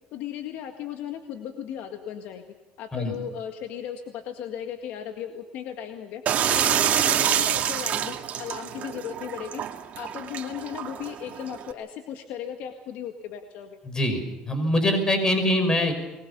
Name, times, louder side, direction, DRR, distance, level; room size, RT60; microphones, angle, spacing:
voice 1, 0.1-2.4 2.8-9.6 9.9-13.8, left 9 dB, 70° left, 5 dB, 1.9 m, -36 dB
sound 1, 6.3-11.7, right 9 dB, 50° right, 2.2 m, -26 dB
voice 2, 13.9-15.9, left 1 dB, 20° left, 7 dB, 5.7 m, -23 dB
23.5 x 21.0 x 7.0 m, 1.0 s
supercardioid pair, 100°, 3 cm